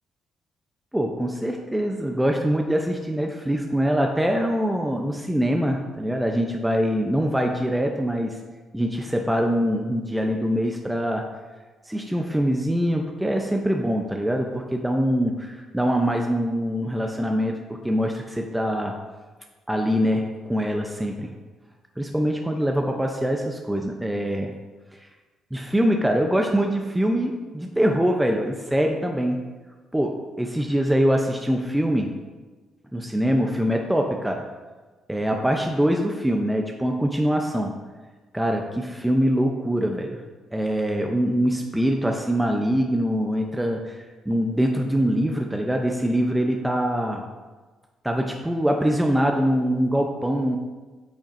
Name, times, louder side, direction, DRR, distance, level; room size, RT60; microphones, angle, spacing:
voice 1, 0.9-8.4 8.7-11.2 11.9-17.5 17.8-19.0 19.7-21.3 22.0-24.5 24.9-25.0 25.5-29.4 29.9-32.1 32.9-34.5 35.1-37.8 38.3-40.2 40.5-47.2 48.0-50.6, equal, 5° right, 2 dB, 0.6 m, -23 dB
8.6 x 5.8 x 2.6 m, 1.3 s
cardioid pair, 90°, 0 cm